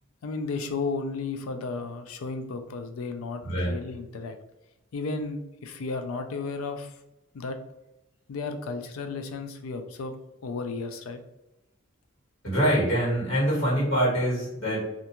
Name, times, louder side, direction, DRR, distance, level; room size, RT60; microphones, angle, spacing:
voice 1, 0.2-4.4 4.9-7.0 7.3-7.6 8.3-10.1 10.4-11.2, left 4 dB, 80° left, 7 dB, 0.4 m, -33 dB
voice 2, 3.4-3.7 12.4-14.8, equal, 60° left, -6 dB, 1.5 m, -24 dB
2.5 x 2.2 x 2.8 m, 0.92 s
head